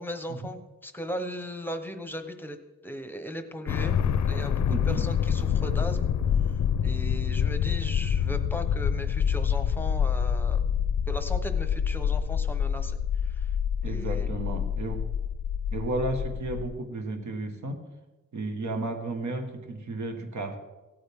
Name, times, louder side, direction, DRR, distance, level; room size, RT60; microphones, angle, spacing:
voice 1, 0.0-2.6 2.8-3.9 4.3-6.1 6.8-10.6 11.1-13.5 13.8-14.3, equal, 5° left, 8 dB, 0.9 m, -37 dB
sound 1, 3.7-16.7, left 8 dB, 65° left, 0.6 m, -27 dB
voice 2, 4.7-5.0 13.8-15.1 15.7-17.8 18.3-20.6, right 2 dB, 65° right, 4 dB, 1.6 m, -33 dB
16.0 x 8.9 x 3.7 m, 1.1 s
wide cardioid pair, 120°, 31 cm